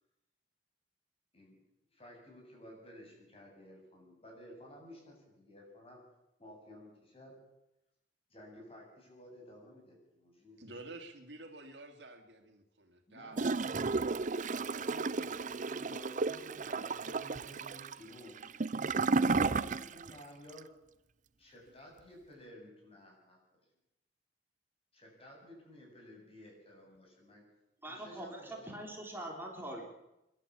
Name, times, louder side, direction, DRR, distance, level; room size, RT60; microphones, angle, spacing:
voice 1, 1.9-6.0 6.4-7.4 8.3-10.6 13.1-14.1 14.8-18.4 19.1-20.7 21.4-23.6 24.9-27.4 27.8-28.8, equal, 35° left, 0 dB, 7.8 m, -54 dB
voice 2, 10.6-14.1 14.4-15.3, right 2 dB, 80° right, 5 dB, 2.7 m, -51 dB
Gurgling / Toilet flush, 13.3-20.2 20.5-20.6, right 4 dB, 45° right, 0.6 m, -33 dB
voice 3, 27.8-29.9, right 1 dB, 15° right, 1 dB, 3.8 m, -43 dB
26.0 x 12.0 x 8.5 m, 0.90 s
head